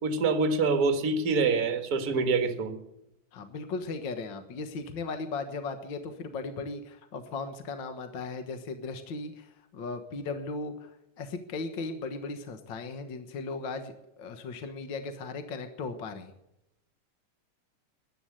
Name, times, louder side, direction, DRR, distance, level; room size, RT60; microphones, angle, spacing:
voice 1, 0.0-2.7, right 4 dB, 40° right, 1.5 m, -25 dB
voice 2, 3.3-16.3, left 3 dB, 50° left, 1.5 m, -37 dB
14.0 x 11.0 x 8.8 m
omnidirectional pair, 3.7 m